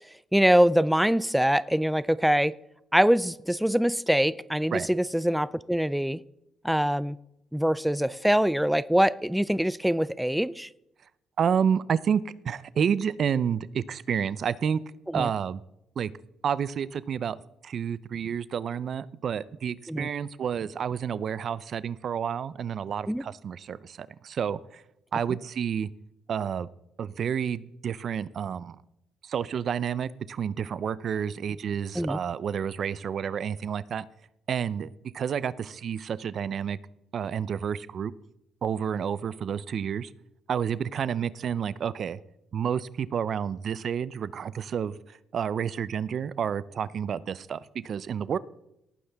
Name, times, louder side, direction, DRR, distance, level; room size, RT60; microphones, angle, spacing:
voice 1, 0.3-2.6 2.9-6.2 6.6-7.2 7.5-10.7 15.1-15.3 19.9-20.1 23.1-23.2 32.0-32.2, equal, 5° right, 17 dB, 0.4 m, -24 dB
voice 2, 11.4-14.8 15.1-15.6 16.0-16.1 16.4-24.8 25.1-25.9 26.3-26.7 27.0-28.8 29.2-34.0 34.5-36.8 37.1-38.1 38.6-40.1 40.5-42.2 42.5-45.0 45.3-48.4, right 7 dB, 55° right, 18 dB, 0.6 m, -30 dB
18.0 x 9.5 x 3.5 m, 0.81 s
cardioid pair, 90°, 0 cm